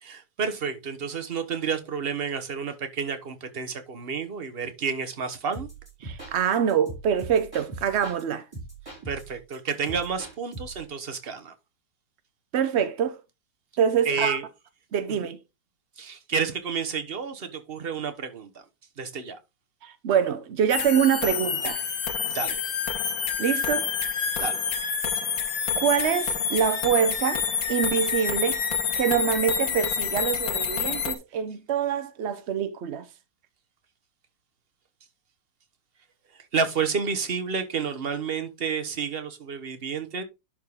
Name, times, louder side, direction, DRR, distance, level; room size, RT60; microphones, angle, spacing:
voice 1, 0.0-5.7 9.1-11.5 14.0-14.4 15.1-15.3 16.0-18.5 19.0-19.4 22.3-22.6 24.4-24.6 36.5-40.2, right 6 dB, 40° right, 1.1 m, -30 dB
sound 1, 5.5-8.2 8.5-10.9, right 3 dB, 15° right, 5.1 m, -41 dB
voice 2, 6.0-8.4 12.5-13.2 13.8-14.4 14.9-15.4 19.8-21.8 23.4-23.9 25.8-27.4 27.7-28.6 29.0-33.0, right 8 dB, 80° right, 0.6 m, -25 dB
sound 2, 20.7-31.1, left 7 dB, 85° left, 1.9 m, -28 dB
11.0 x 4.6 x 3.5 m
omnidirectional pair, 2.0 m